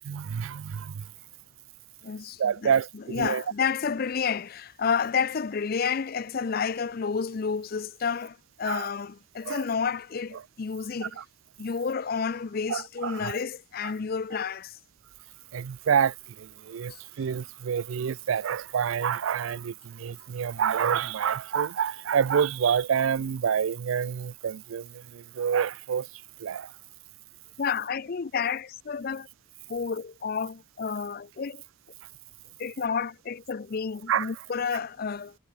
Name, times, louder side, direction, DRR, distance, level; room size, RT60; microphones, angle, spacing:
voice 1, 0.0-1.1 2.4-3.4 8.6-8.9 9.4-9.6 10.3-10.4 11.2-11.3 12.7-13.4 15.5-26.1 26.4-26.7 34.1-34.3, right 7 dB, 75° right, 0.4 m, -28 dB
voice 2, 2.0-11.2 11.6-14.8 16.9-17.0 27.6-29.3 29.7-31.6 32.6-35.4, left 6 dB, 45° left, 0.5 m, -30 dB
head